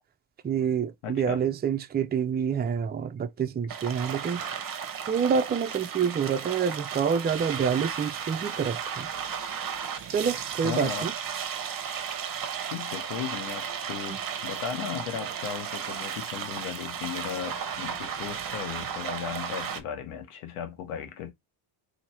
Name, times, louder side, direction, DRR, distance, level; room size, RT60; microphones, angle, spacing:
voice 1, 0.4-4.4 5.1-9.1 10.1-11.1 14.1-14.2, right 7 dB, 20° right, 0.4 m, -27 dB
voice 2, 1.0-1.4 10.6-11.1 12.6-21.3, left 9 dB, 85° left, 1.1 m, -36 dB
sound 1, 3.7-19.8, right 8 dB, 45° right, 0.8 m, -34 dB
2.8 x 2.8 x 4.2 m
supercardioid pair, 70°, 49 cm